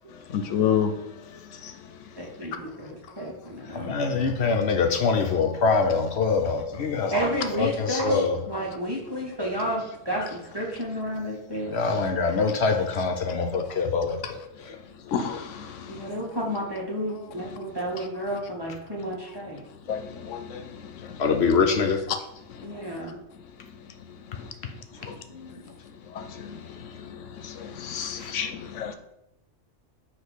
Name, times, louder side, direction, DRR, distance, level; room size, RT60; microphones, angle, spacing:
voice 1, 0.3-0.9 1.6-1.7 15.1-16.1 19.9-21.2 24.4-24.5 25.1-25.2 26.1-29.0, left 8 dB, 90° left, 1.0 m, -30 dB
voice 2, 2.2-2.9 3.2-4.2 7.1-11.7 15.9-19.6 22.6-23.2 24.9-25.7, equal, 20° right, 1.6 m, -31 dB
voice 3, 3.7-7.1 7.6-8.4 11.7-14.8 21.2-22.0 28.2-28.3, left 4 dB, 65° left, 0.9 m, -24 dB
7.6 x 3.1 x 6.2 m
omnidirectional pair, 1.2 m